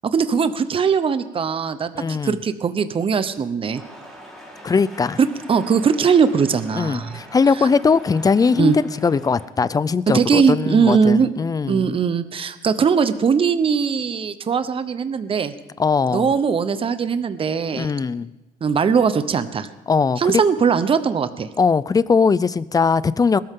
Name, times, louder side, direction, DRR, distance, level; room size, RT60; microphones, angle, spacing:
voice 1, 0.0-3.8 5.2-7.1 8.6-8.8 10.1-11.3 11.7-15.5 16.1-17.9 18.6-19.7 20.2-21.5, right 6 dB, 35° right, 12 dB, 0.9 m, -20 dB
voice 2, 1.9-2.4 4.6-5.2 6.7-8.7 9.0-12.0 15.8-16.3 17.7-18.3 19.9-20.4 21.6-23.4, left 5 dB, 20° left, 18 dB, 0.5 m, -20 dB
sound 1, 3.7-9.5, equal, ahead, 4.1 m, -42 dB
21.0 x 13.5 x 3.8 m, 1.1 s
cardioid pair, 110°, 17 cm